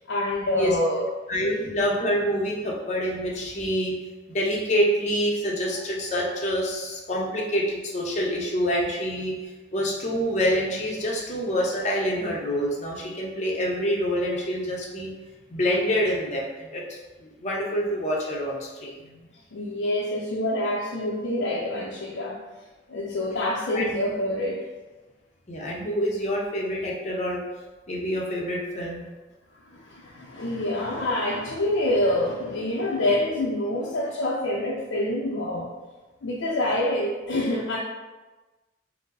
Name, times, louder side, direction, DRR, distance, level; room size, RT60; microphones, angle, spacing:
voice 1, 0.0-1.1 1.4-1.5 19.1-22.4 22.9-24.7 29.7-35.7 36.2-37.8, left 1 dB, 90° left, -4 dB, 0.6 m, -26 dB
voice 2, 0.5-3.9 4.3-9.3 9.7-15.1 15.5-16.8 17.2-18.9 23.7-24.0 25.5-27.4 27.9-29.0, equal, 40° left, -2 dB, 0.8 m, -26 dB
5.2 x 2.1 x 3.8 m, 1.2 s
head